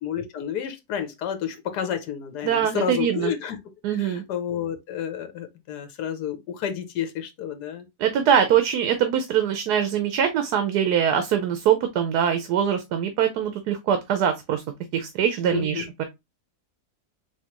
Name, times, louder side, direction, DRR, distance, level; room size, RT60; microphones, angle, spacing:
voice 1, 0.0-3.6 3.9-7.9 15.5-15.9, left 8 dB, 85° left, 1.3 m, -30 dB
voice 2, 2.4-3.3 3.8-4.2 8.0-14.6 14.9-16.0, right 9 dB, 80° right, 1.2 m, -23 dB
4.3 x 3.1 x 2.9 m
omnidirectional pair, 1.7 m